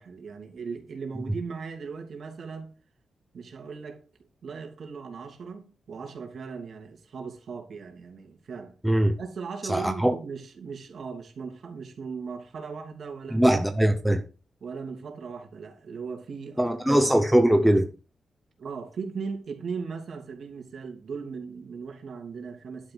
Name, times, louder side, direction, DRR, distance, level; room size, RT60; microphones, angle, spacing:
voice 1, 0.0-2.7 3.3-4.0 4.4-8.8 9.2-13.6 14.6-17.0 18.6-22.9, right 5 dB, 55° right, 2.8 m, -38 dB
voice 2, 8.8-9.1 9.7-10.1 13.3-14.2 16.6-17.9, right 1 dB, 5° right, 0.9 m, -21 dB
11.5 x 6.1 x 6.2 m
wide cardioid pair, 170°, 0 cm